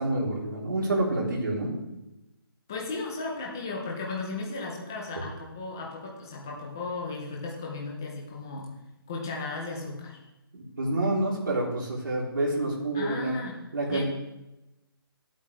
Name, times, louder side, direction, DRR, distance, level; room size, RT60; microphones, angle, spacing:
voice 1, 0.0-1.7 10.5-13.3 13.7-14.1, right 2 dB, 55° right, -3 dB, 3.3 m, -28 dB
voice 2, 2.7-8.7 9.1-10.2 12.9-13.6 13.9-14.0, left 3 dB, 10° left, -2 dB, 0.5 m, -35 dB
12.5 x 8.4 x 3.3 m, 0.95 s
hypercardioid pair, 180°, 13 cm